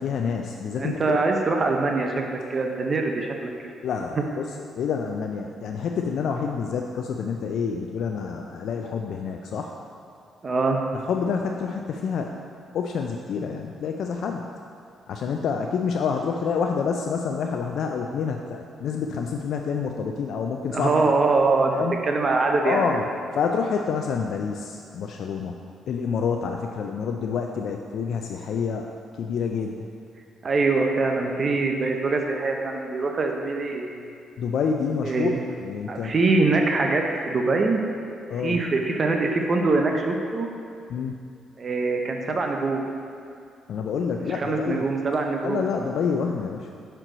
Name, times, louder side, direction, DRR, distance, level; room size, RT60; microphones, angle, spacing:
voice 1, 0.0-1.2 3.8-4.4 4.7-9.7 11.1-12.3 12.7-14.5 15.1-21.1 21.7-21.9 22.6-23.1 23.3-25.6 25.9-28.9 29.2-29.9 34.4-36.1 38.3-38.6 40.9-41.1 43.7-44.8 45.4-46.7, left 6 dB, 70° left, 3 dB, 0.3 m, -28 dB
voice 2, 0.8-3.5 4.2-4.3 10.4-10.8 20.7-21.7 22.0-22.9 30.4-34.0 35.0-35.4 35.9-37.8 38.3-40.5 41.6-42.9 44.2-45.6, right 3 dB, 40° right, 2 dB, 0.6 m, -23 dB
6.1 x 4.4 x 3.9 m, 2.4 s
cardioid pair, 90°, 0 cm